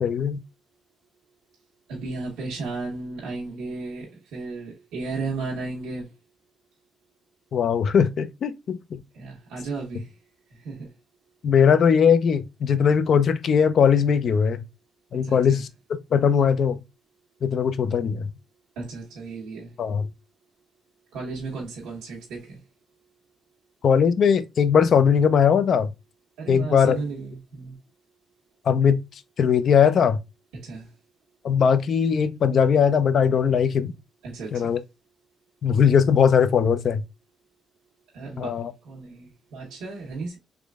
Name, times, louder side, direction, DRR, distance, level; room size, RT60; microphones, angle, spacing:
voice 1, 0.0-0.4 7.5-9.0 11.4-14.6 15.1-16.8 17.4-18.3 19.8-20.1 23.8-25.9 26.5-27.0 28.7-29.0 29.4-30.2 31.4-33.9 34.5-34.8 35.6-37.0 38.4-38.7, left 7 dB, 60° left, 0.5 m, -20 dB
voice 2, 1.9-6.1 9.1-10.1 10.5-10.9 15.1-15.6 18.8-19.7 21.1-22.6 26.4-27.8 30.5-30.9 34.2-34.8 38.1-40.4, right 3 dB, 90° right, 1.1 m, -34 dB
3.6 x 3.2 x 2.3 m
cardioid pair, 90°, 0 cm